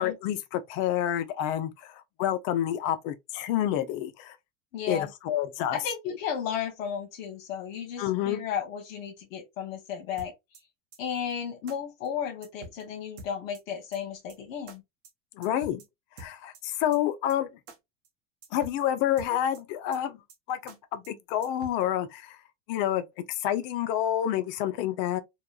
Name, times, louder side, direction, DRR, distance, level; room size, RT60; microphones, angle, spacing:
voice 1, 0.0-4.4 4.9-5.8 8.0-8.4 15.4-15.8 16.2-17.5 18.5-20.2 20.5-22.4 22.7-25.2, left 11 dB, 45° left, 0.4 m, -28 dB
voice 2, 4.7-5.1 5.7-10.3 11.0-14.8, left 8 dB, 80° left, 0.9 m, -34 dB
sound 1, 10.2-10.6 10.9-11.0 11.3-11.4 11.7-11.8 12.0-12.1 12.4-12.8 13.2-13.6 13.9-14.0 14.3-14.4 14.7-14.8 15.0-15.1 15.4-15.9 16.2-16.6 16.9-17.0 17.3-17.4 17.7-17.8 18.0-18.1 18.4-18.8 19.2-19.6 19.9-20.0 20.3-20.4 20.7-20.8 21.0-21.1 21.4-21.8, right 3 dB, 50° right, 0.9 m, -46 dB
2.8 x 2.3 x 2.2 m
supercardioid pair, 140°, 39 cm